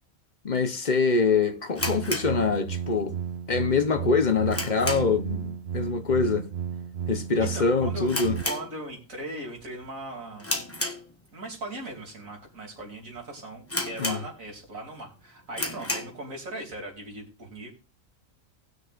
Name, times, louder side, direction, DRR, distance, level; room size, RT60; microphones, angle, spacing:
voice 1, 0.4-3.2 3.5-6.5 7.1-8.4 14.0-14.2, left 4 dB, 40° left, 0.8 m, -24 dB
sound 1, 1.7-3.1 3.4-3.5 4.0-5.3 5.6-5.9 6.2-6.3 7.0-7.3 7.5-7.6 8.0-9.2 9.6-9.9 10.4-11.5 12.1-12.2 12.8-12.9 13.1-13.2 13.7-14.6 15.0-15.1 15.5-16.2, left 1 dB, 10° left, 1.1 m, -32 dB
sound 2, 1.8-8.4, right 8 dB, 60° right, 0.8 m, -33 dB
voice 2, 7.4-8.1 8.4-10.6 11.3-17.7, right 2 dB, 80° right, 3.4 m, -39 dB
18.5 x 6.3 x 2.5 m
omnidirectional pair, 1.4 m